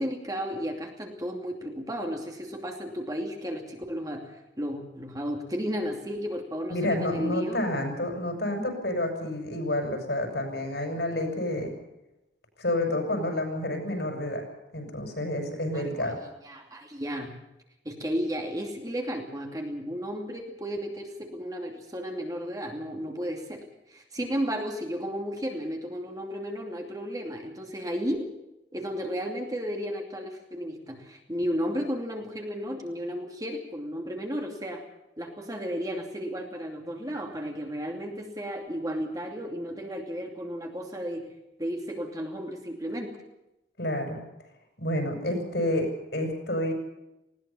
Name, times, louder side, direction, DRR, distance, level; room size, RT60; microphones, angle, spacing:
voice 1, 0.0-7.6 15.7-17.3 17.8-28.3 28.7-34.9 35.2-41.3 41.6-43.1, equal, 20° right, 2 dB, 2.7 m, -33 dB
voice 2, 6.7-11.7 12.6-14.4 14.7-16.2 43.8-44.2 44.8-46.7, left 1 dB, 60° left, 4 dB, 6.3 m, -29 dB
20.0 x 18.5 x 7.1 m, 0.92 s
head